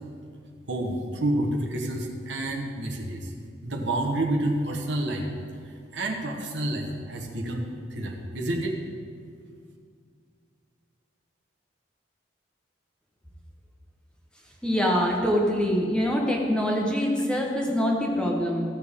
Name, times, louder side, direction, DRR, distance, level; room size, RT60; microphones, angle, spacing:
voice 1, 0.7-3.3 3.6-5.3 5.9-8.8, right 1 dB, 70° right, 1 dB, 1.1 m, -29 dB
voice 2, 14.6-18.6, equal, 5° left, -1 dB, 1.0 m, -24 dB
14.5 x 6.6 x 3.6 m, 2.2 s
head